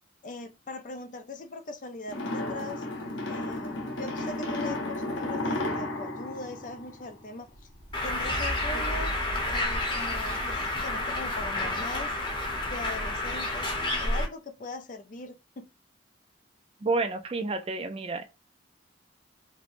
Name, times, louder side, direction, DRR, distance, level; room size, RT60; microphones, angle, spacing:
voice 1, 0.2-2.9 3.3-7.7 8.0-9.1 9.5-12.2 12.6-13.7 14.0-15.6, left 2 dB, 45° left, 0.4 m, -40 dB
sound 1, 2.1-7.4, left 1 dB, 90° left, 0.9 m, -33 dB
sound 2, 7.5-12.1, equal, 55° right, 1.3 m, -39 dB
Bird, 7.9-14.2, left 2 dB, 25° left, 0.8 m, -30 dB
voice 2, 16.8-18.2, right 3 dB, 30° right, 0.4 m, -29 dB
4.3 x 2.1 x 2.5 m
head